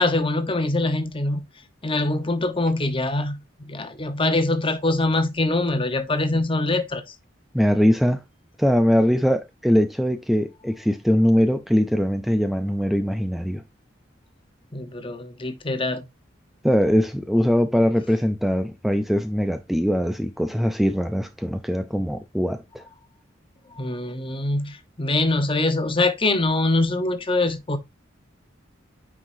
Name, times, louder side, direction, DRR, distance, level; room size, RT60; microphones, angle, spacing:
voice 1, 0.0-1.4 1.8-3.4 3.6-7.0 14.7-16.0 23.8-27.8, left 2 dB, 30° left, 1.0 m, -23 dB
voice 2, 7.5-8.2 8.6-13.6 16.6-22.8, equal, ahead, 0.5 m, -21 dB
9.4 x 4.9 x 2.7 m
head